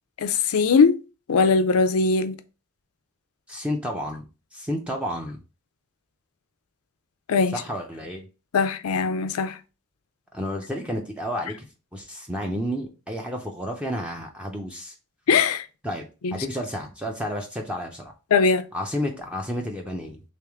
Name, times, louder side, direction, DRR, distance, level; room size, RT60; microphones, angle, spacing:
voice 1, 0.2-1.0 1.3-2.4 7.3-7.5 8.5-9.5 15.3-15.6 16.2-16.3 18.3-18.7, left 5 dB, 75° left, 0.4 m, -20 dB
voice 2, 3.5-4.2 4.5-5.4 7.5-8.3 10.3-11.7 11.9-14.9 15.8-16.0 16.3-18.1 18.7-20.2, equal, 5° right, 0.5 m, -31 dB
3.4 x 3.0 x 3.4 m
head